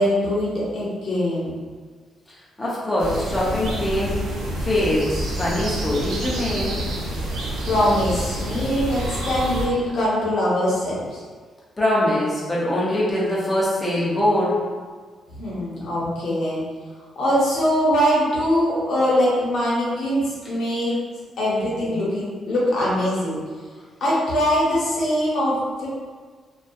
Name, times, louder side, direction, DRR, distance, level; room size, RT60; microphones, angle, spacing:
voice 1, 0.0-1.6 7.6-11.2 15.3-16.6 17.2-20.9 21.4-23.4 24.0-25.9, equal, 65° left, -6 dB, 0.8 m, -22 dB
voice 2, 2.3-4.2 4.6-6.8 11.8-14.6 21.9-22.0, left 1 dB, 20° left, -7 dB, 0.5 m, -23 dB
sound 1, 3.0-9.7, right 1 dB, 85° right, 0.5 m, -28 dB
2.6 x 2.2 x 2.3 m, 1.5 s
cardioid pair, 100°, 0 cm